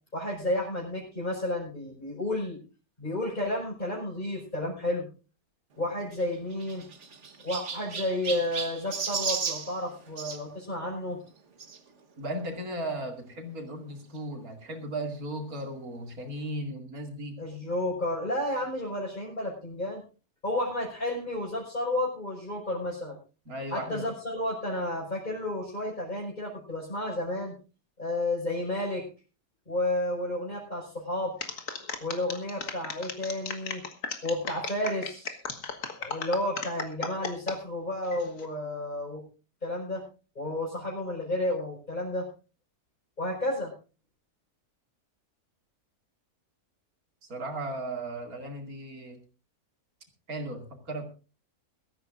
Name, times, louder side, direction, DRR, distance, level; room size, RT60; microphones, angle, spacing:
voice 1, 0.1-2.6 3.0-5.1 5.8-6.9 7.4-11.2 17.4-20.0 20.4-23.2 23.7-27.5 28.0-29.1 29.7-31.3 32.0-33.8 34.2-35.3 36.0-39.2 39.6-40.0 40.4-42.3 43.2-43.7, left 1 dB, 30° left, -5 dB, 5.5 m, -31 dB
Chirp tweet, 6.1-10.4 11.6-11.8 12.5-12.6 12.8-12.9 14.2-14.3, right 5 dB, 50° right, 1.5 m, -35 dB
voice 2, 12.2-17.4 23.5-24.1 47.2-49.2 50.3-51.0, right 1 dB, 65° right, 3 dB, 3.0 m, -36 dB
sound 1, 31.4-37.6 38.0-38.5, left 5 dB, 60° left, 1.9 m, -36 dB
22.5 x 13.5 x 2.5 m, 0.33 s
omnidirectional pair, 1.6 m